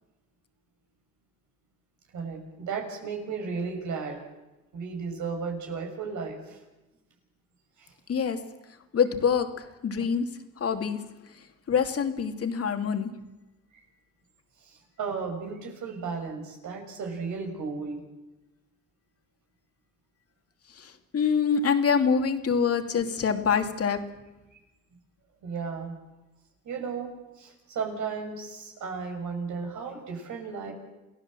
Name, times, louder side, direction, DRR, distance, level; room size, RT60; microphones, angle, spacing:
voice 1, 2.1-4.2 4.7-6.6 7.8-7.9 15.0-18.0 24.5-24.6 25.4-25.9 26.6-27.1 27.3-30.7, right 5 dB, 75° right, 2 dB, 6.5 m, -34 dB
voice 2, 8.9-10.3 10.6-11.0 11.7-13.1 20.8-24.0, left 6 dB, 50° left, 6 dB, 2.7 m, -25 dB
28.5 x 16.5 x 7.7 m, 1.0 s
cardioid pair, 90°, 30 cm